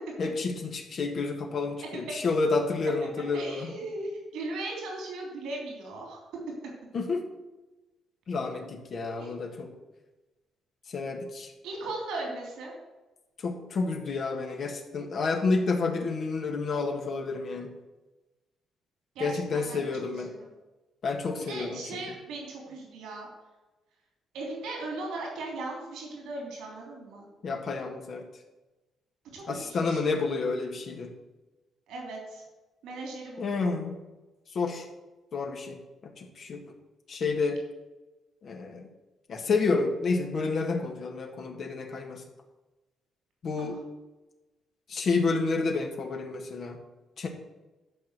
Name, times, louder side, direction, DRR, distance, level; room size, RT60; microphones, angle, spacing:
voice 1, 0.2-3.7 6.9-7.3 8.3-9.7 10.9-11.5 13.4-17.7 19.2-20.3 21.0-22.0 27.4-28.2 29.5-31.1 33.4-34.0 34.5-34.8 35.3-36.6 37.1-37.6 38.4-38.9 39.3-42.2 43.4-43.8 44.9-46.8 47.2-47.3, left 4 dB, 55° left, 2 dB, 1.6 m, -30 dB
voice 2, 3.3-6.2 9.2-9.3 11.6-12.7 19.1-19.8 20.1-20.4 21.5-23.3 24.3-27.3 29.3-30.1 31.9-32.4 32.8-33.7 43.6-43.7, right 2 dB, 85° right, -1 dB, 3.2 m, -38 dB
12.0 x 4.4 x 8.1 m, 1.1 s
cardioid pair, 90°, 0 cm